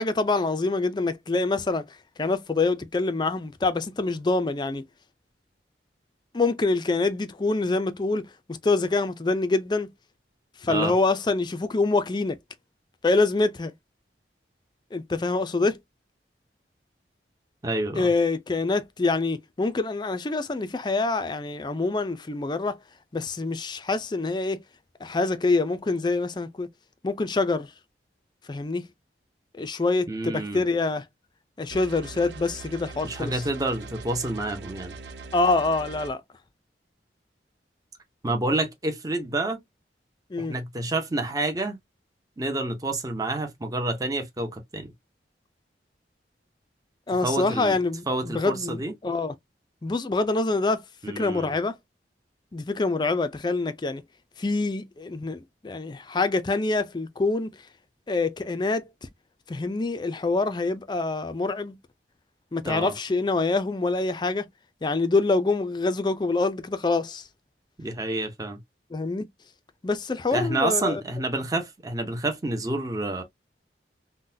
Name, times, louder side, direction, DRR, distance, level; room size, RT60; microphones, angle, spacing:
voice 1, 0.0-1.9 2.2-4.8 6.3-9.9 10.6-12.4 13.0-13.7 14.9-15.8 17.9-22.8 23.1-24.6 25.0-26.7 27.0-27.7 28.5-28.9 29.5-31.1 31.6-33.4 35.3-36.2 40.3-40.6 47.1-49.3 49.8-50.8 51.1-51.8 52.5-54.0 54.4-57.5 58.1-58.9 59.5-61.7 62.5-64.5 64.8-67.3 68.9-69.2 69.8-71.0, left 3 dB, 25° left, 0.4 m, -25 dB
voice 2, 17.6-18.1 30.1-30.6 33.0-34.9 38.2-39.6 40.4-41.8 42.4-44.9 47.2-47.8 48.1-48.9 51.0-51.6 62.6-62.9 67.8-68.6 70.3-73.2, right 2 dB, 20° right, 0.7 m, -28 dB
sound 1, 31.7-36.1, right 3 dB, 75° right, 0.6 m, -41 dB
3.8 x 2.2 x 2.6 m
head